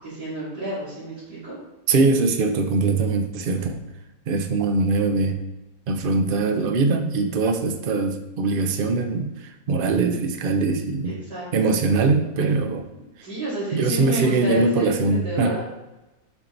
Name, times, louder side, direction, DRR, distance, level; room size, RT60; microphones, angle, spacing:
voice 1, 0.0-1.6 11.0-11.5 13.2-15.6, equal, 85° right, -13 dB, 3.4 m, -30 dB
voice 2, 1.9-3.8 4.3-5.4 5.9-11.1 11.5-12.8 13.7-15.5, right 3 dB, 55° right, 6 dB, 0.6 m, -22 dB
7.2 x 4.7 x 4.0 m, 1.0 s
omnidirectional pair, 1.8 m